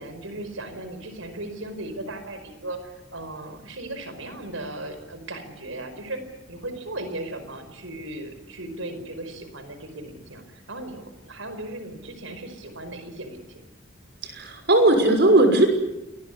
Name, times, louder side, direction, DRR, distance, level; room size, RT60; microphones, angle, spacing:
voice 1, 0.0-6.2 6.5-13.7, right 1 dB, 80° right, 9 dB, 5.1 m, -37 dB
voice 2, 14.2-15.7, right 2 dB, 55° right, 6 dB, 6.0 m, -18 dB
28.0 x 21.0 x 9.8 m, 0.97 s
head